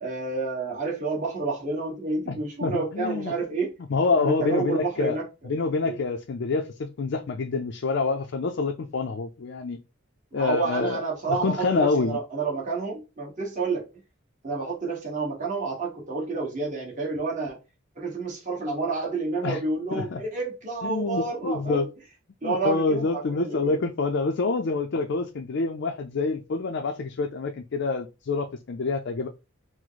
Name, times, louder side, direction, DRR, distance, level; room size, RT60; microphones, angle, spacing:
voice 1, 0.0-3.7 4.2-5.2 5.8-6.0 10.3-13.8 14.4-17.6 17.9-21.9 22.4-23.8, right 3 dB, 40° right, 1.4 m, -29 dB
voice 2, 2.3-3.3 3.9-5.2 5.5-9.8 10.3-11.0 11.4-12.2 19.4-19.6 19.9-20.2 20.8-21.9 22.4-29.3, left 4 dB, 60° left, 0.4 m, -27 dB
4.6 x 2.0 x 4.0 m
head